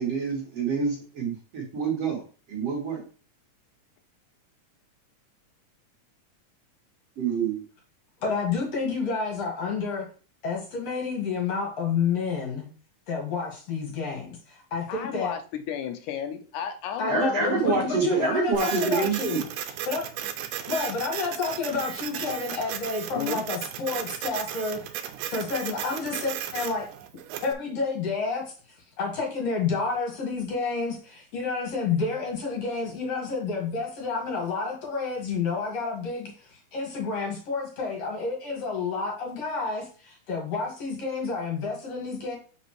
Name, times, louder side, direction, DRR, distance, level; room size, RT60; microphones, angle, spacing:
voice 1, 0.0-2.2 2.5-3.0 7.2-7.6 17.1-19.4, right 5 dB, 55° right, 2.4 m, -27 dB
voice 2, 8.2-10.1 10.4-12.7 13.1-14.3 14.7-15.3 17.0-19.5 19.9-20.1 20.7-24.8 25.3-26.8 27.4-28.4 29.0-42.4, left 4 dB, 55° left, 2.7 m, -29 dB
voice 3, 14.9-17.9 23.2-23.4, left 9 dB, 80° left, 2.2 m, -32 dB
Printer, 18.5-27.5, right 10 dB, 85° right, 2.2 m, -35 dB
6.9 x 5.4 x 3.1 m
omnidirectional pair, 3.6 m